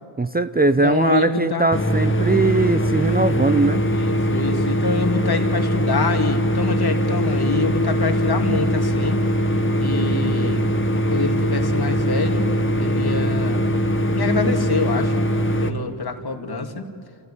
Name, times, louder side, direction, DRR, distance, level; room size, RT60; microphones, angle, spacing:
voice 1, 0.2-3.8, right 3 dB, 20° right, 11 dB, 0.8 m, -20 dB
voice 2, 0.8-1.7 3.9-9.2 9.8-10.7 11.1-12.5 12.8-13.6 14.1-15.1 15.6-16.8, left 3 dB, 50° left, 3 dB, 2.8 m, -25 dB
sound 1, 1.7-15.7, equal, 25° left, 1.8 m, -21 dB
26.5 x 16.0 x 9.0 m, 2.2 s
cardioid pair, 40°, 49 cm